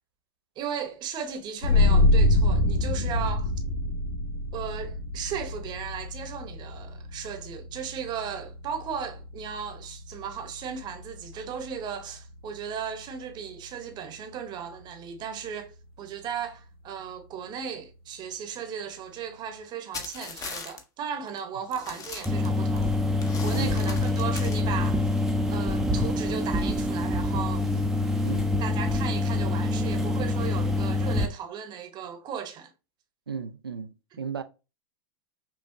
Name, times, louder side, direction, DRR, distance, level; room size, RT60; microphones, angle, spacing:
voice 1, 0.6-3.5 4.5-22.9 23.4-25.1 25.5-27.8 28.6-32.7 34.1-34.2, right 7 dB, 35° right, 0.9 m, -36 dB
sound 1, 1.6-12.9, left 2 dB, 85° left, 0.9 m, -27 dB
sound 2, 19.9-20.8 21.3-21.4 21.7-22.8 23.2-24.6, left 4 dB, 30° left, 0.9 m, -38 dB
sound 3, 22.3-31.3, left 2 dB, 5° right, 0.6 m, -26 dB
voice 2, 23.5-23.8 28.2-28.5 33.3-34.4, right 6 dB, 90° right, 0.5 m, -35 dB
5.8 x 2.3 x 2.6 m
hypercardioid pair, 95°, 12 cm